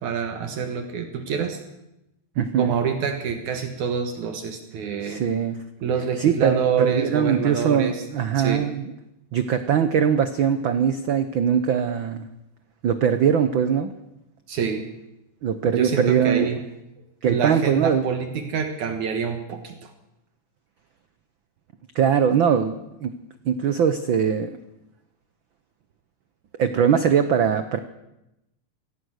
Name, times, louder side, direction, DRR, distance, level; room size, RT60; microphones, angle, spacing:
voice 1, 0.0-1.6 2.6-5.2 5.8-8.1 8.4-8.7 14.5-14.9 15.6-16.6 17.2-19.9, right 6 dB, 70° right, 6 dB, 2.9 m, -26 dB
voice 2, 2.4-2.7 5.0-5.6 6.2-8.9 9.3-12.3 12.8-13.9 15.4-16.5 17.2-18.0 21.9-23.1 23.4-24.5 26.6-27.8, right 8 dB, 90° right, 10 dB, 1.0 m, -21 dB
24.5 x 17.5 x 6.5 m, 0.89 s
omnidirectional pair, 3.5 m